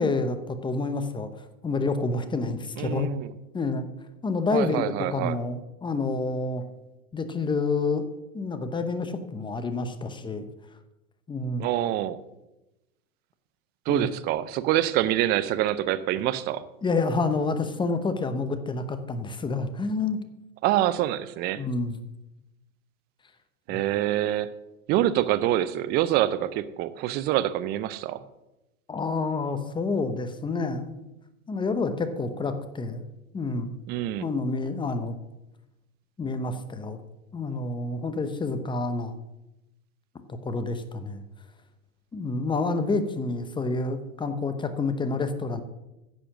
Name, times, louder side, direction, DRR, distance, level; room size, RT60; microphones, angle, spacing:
voice 1, 0.0-3.1 3.5-3.9 4.2-4.8 5.1-6.6 7.1-8.1 8.3-10.4 11.3-11.7 13.9-14.1 16.8-20.2 21.6-22.0 23.7-23.8 28.9-31.0 31.5-33.0 33.3-33.7 34.2-35.1 36.2-37.0 37.3-39.1 40.3-41.2 42.1-45.6, left 3 dB, 10° left, 10 dB, 0.8 m, -28 dB
voice 2, 2.8-3.3 4.5-5.4 11.6-12.2 13.9-16.7 20.6-21.6 23.7-24.5 24.9-28.2 33.9-34.3, right 13 dB, 25° right, 15 dB, 0.4 m, -26 dB
10.5 x 7.0 x 6.1 m, 0.97 s
hypercardioid pair, 110°, 43 cm